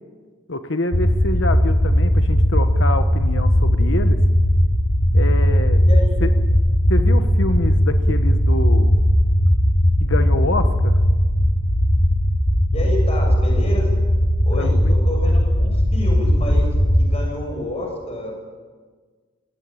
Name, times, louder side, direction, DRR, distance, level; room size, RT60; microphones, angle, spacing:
voice 1, 0.5-4.2 5.1-5.8 6.2-6.3 6.9-8.9 10.0-11.0 14.5-14.9, left 2 dB, 65° left, 8 dB, 1.2 m, -26 dB
sound 1, 0.9-17.2, equal, 80° left, 3.5 m, -17 dB
voice 2, 5.9-6.2 10.4-10.6 12.7-14.0 14.4-16.7 17.0-18.4, left 1 dB, 30° left, 0 dB, 6.8 m, -29 dB
24.0 x 16.5 x 9.1 m, 1.5 s
head